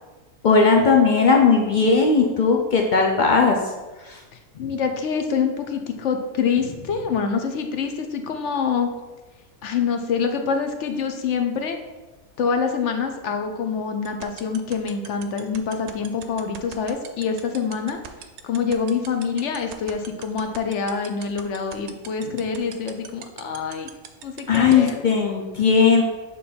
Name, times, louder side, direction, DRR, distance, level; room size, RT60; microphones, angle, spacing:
voice 1, 0.4-3.6 4.0-4.2 24.5-26.0, left 5 dB, 85° left, 2 dB, 0.4 m, -17 dB
voice 2, 4.6-8.9 9.6-11.8 12.4-18.0 18.4-23.9 24.2-25.0, left 6 dB, 65° left, 6 dB, 0.8 m, -26 dB
sound 1, 14.1-24.9, right 10 dB, 65° right, 0.7 m, -38 dB
6.9 x 3.3 x 4.3 m, 1.2 s
omnidirectional pair, 1.5 m